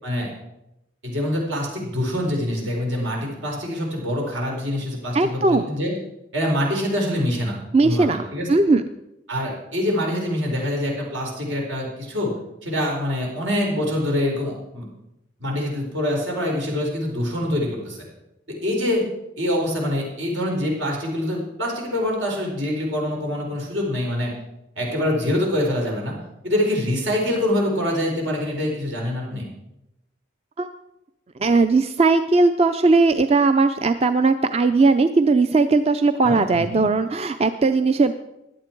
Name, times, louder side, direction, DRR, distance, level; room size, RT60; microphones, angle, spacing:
voice 1, 1.0-5.9 6.3-8.5 9.3-12.3 12.6-14.8 15.4-18.0 18.6-19.1 19.4-24.3 24.8-26.2 26.4-29.4 36.2-36.8, left 1 dB, 80° right, -1 dB, 4.6 m, -25 dB
voice 2, 5.1-5.7 7.7-8.2 8.5-8.8 30.6-30.7 31.4-38.1, right 3 dB, 30° right, 10 dB, 0.4 m, -18 dB
16.5 x 11.0 x 4.6 m, 0.89 s
head